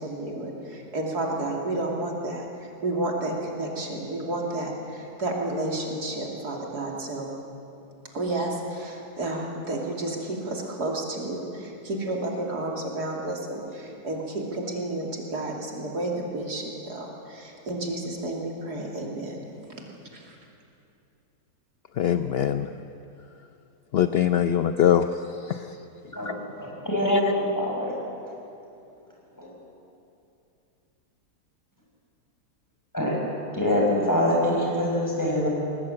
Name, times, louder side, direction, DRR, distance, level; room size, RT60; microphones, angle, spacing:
voice 1, 0.0-2.4 2.8-7.3 8.1-19.4 20.1-20.4, right 2 dB, 70° right, 0 dB, 3.4 m, -31 dB
voice 2, 22.0-22.7 23.9-25.1 25.4-25.7 26.3-26.4 27.1-27.2, left 9 dB, 65° left, 10 dB, 0.6 m, -22 dB
voice 3, 26.6-27.9 29.4-29.5 32.9-33.2 33.5-35.5, left 1 dB, 10° left, -3 dB, 5.9 m, -24 dB
20.5 x 19.0 x 8.8 m, 2.7 s
omnidirectional pair, 1.7 m